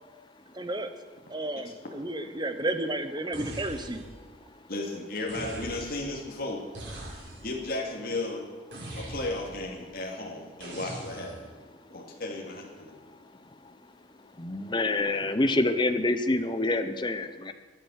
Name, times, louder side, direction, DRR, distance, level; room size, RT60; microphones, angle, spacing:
voice 1, 0.5-0.9 1.3-4.0, right 1 dB, 25° right, 9 dB, 1.0 m, -32 dB
sound 1, 3.3-4.2 5.3-6.1 6.7-7.6 8.7-9.6 10.6-11.5, right 1 dB, 75° right, 4.6 m, -41 dB
voice 2, 4.7-6.6 7.4-8.5 9.0-11.5 11.9-12.9, left 2 dB, 50° left, -1 dB, 2.4 m, -34 dB
voice 3, 14.4-17.5, left 2 dB, 25° left, 9 dB, 0.8 m, -26 dB
22.5 x 8.5 x 6.5 m, 1.4 s
head